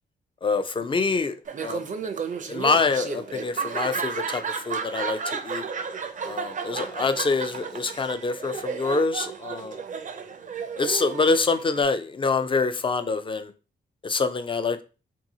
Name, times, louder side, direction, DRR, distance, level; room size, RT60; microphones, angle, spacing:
voice 1, 0.4-1.4 1.6-1.9 2.5-5.7 6.2-9.8 10.8-13.5 14.0-14.8, left 4 dB, 25° left, 0.4 m, -25 dB
Laughter, 1.5-11.8, right 6 dB, 40° right, 0.4 m, -33 dB
2.7 x 2.6 x 2.7 m
cardioid pair, 65°, 20 cm